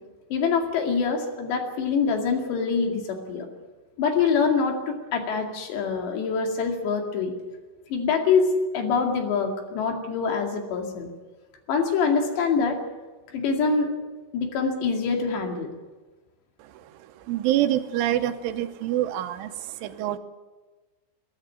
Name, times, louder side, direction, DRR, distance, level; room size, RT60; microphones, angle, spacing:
voice 1, 0.3-3.5 4.0-7.3 7.9-11.1 11.7-12.8 13.3-13.9 14.3-15.7, left 5 dB, 65° left, 3 dB, 4.4 m, -25 dB
voice 2, 16.6-20.2, right 13 dB, 80° right, 9 dB, 3.4 m, -27 dB
23.0 x 13.0 x 9.2 m, 1.3 s
omnidirectional pair, 5.5 m